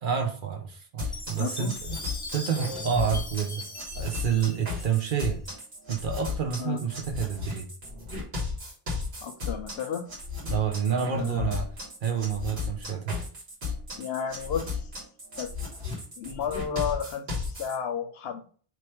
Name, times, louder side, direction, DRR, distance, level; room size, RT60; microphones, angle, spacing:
voice 1, 0.0-2.0 2.3-3.6 4.0-5.4 5.9-7.7 10.4-11.7 12.0-13.1, right 7 dB, 60° right, 5 dB, 0.8 m, -28 dB
sound 1, 1.0-17.8, left 4 dB, 85° right, 1.8 m, -35 dB
Chime, 1.1-5.5, left 2 dB, 25° left, 0.7 m, -40 dB
voice 2, 1.4-1.7 6.6-6.8 9.2-10.0 10.9-11.5 14.0-14.7 15.4-15.5 16.2-18.5, left 7 dB, 75° left, 7 dB, 0.9 m, -32 dB
3.1 x 3.0 x 4.4 m, 0.43 s
omnidirectional pair, 1.0 m